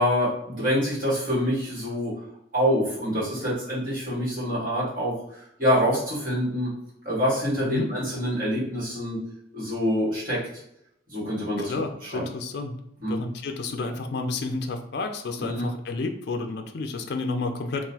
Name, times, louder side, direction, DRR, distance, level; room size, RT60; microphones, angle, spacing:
voice 1, 0.0-2.2 2.5-6.7 7.0-9.2 9.5-10.4 11.1-12.2 13.0-13.2 15.4-15.6, equal, 45° right, -9 dB, 1.4 m, -26 dB
voice 2, 11.6-12.8 13.1-17.9, left 3 dB, 55° left, 6 dB, 0.3 m, -31 dB
3.8 x 2.4 x 2.8 m, 0.78 s
head